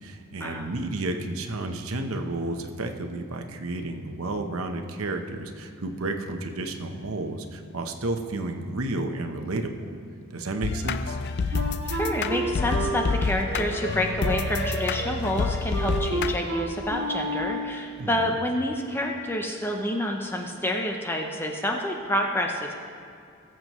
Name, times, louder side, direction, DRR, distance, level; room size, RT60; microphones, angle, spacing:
voice 1, 0.0-9.9 10.3-11.2 18.0-18.3, right 2 dB, 85° right, 5 dB, 0.9 m, -31 dB
sound 1, 10.6-16.4, left 4 dB, 55° left, 0.4 m, -28 dB
voice 2, 11.4-22.7, left 1 dB, 10° left, 2 dB, 0.6 m, -28 dB
Wind instrument woodwind instrument, 11.5-17.8, right 1 dB, 60° right, 1.4 m, -31 dB
19.5 x 7.7 x 3.1 m, 2.5 s
head